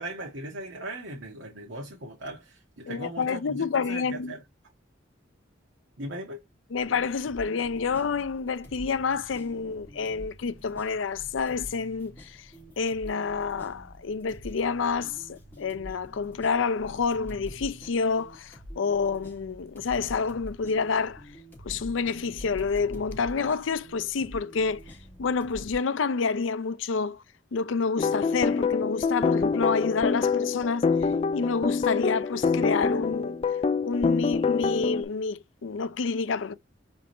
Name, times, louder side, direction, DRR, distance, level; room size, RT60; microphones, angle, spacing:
voice 1, 0.0-4.4 6.0-6.4, right 1 dB, 80° right, 1.2 m, -38 dB
voice 2, 2.9-4.3 6.7-12.5 12.8-21.2 21.6-27.2 27.5-33.4 33.8-36.5, left 5 dB, 85° left, 0.5 m, -28 dB
sound 1, 6.7-25.8, equal, 10° left, 2.9 m, -46 dB
sound 2, 28.0-35.0, left 5 dB, 30° left, 0.3 m, -26 dB
5.1 x 3.4 x 3.0 m
head